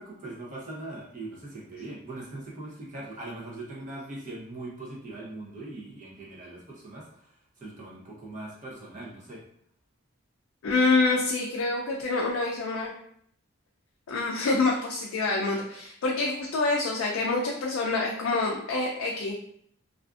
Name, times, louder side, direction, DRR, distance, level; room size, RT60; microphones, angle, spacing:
voice 1, 0.0-7.2 7.6-9.4, right 2 dB, 35° right, -4 dB, 0.6 m, -41 dB
voice 2, 10.6-12.9 14.1-19.4, left 3 dB, 70° left, -2 dB, 0.3 m, -26 dB
2.5 x 2.4 x 2.3 m, 0.66 s
head